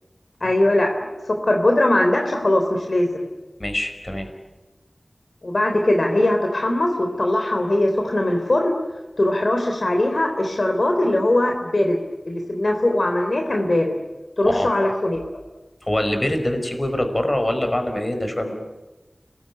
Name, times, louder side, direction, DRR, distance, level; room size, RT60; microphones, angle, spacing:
voice 1, 0.4-0.9 1.4-3.2 5.4-8.7 9.2-12.0 12.3-13.9 14.4-15.2, left 1 dB, 60° left, 3 dB, 3.5 m, -20 dB
voice 2, 3.6-4.3 14.4-14.7 15.8-18.5, left 1 dB, 30° left, 6 dB, 5.2 m, -24 dB
30.0 x 20.5 x 9.7 m, 1.1 s
wide cardioid pair, 60°, 0 cm